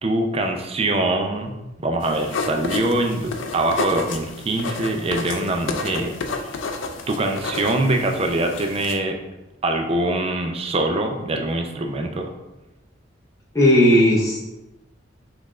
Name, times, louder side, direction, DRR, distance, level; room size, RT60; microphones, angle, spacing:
voice 1, 0.0-1.6 1.8-6.5 7.1-9.2 9.6-12.3, right 2 dB, 30° right, 4 dB, 0.4 m, -23 dB
sound 1, 2.0-9.0, left 3 dB, 80° left, 0.4 m, -31 dB
voice 2, 13.5-14.5, equal, 15° left, -4 dB, 0.6 m, -15 dB
5.5 x 2.5 x 3.2 m, 1.0 s
head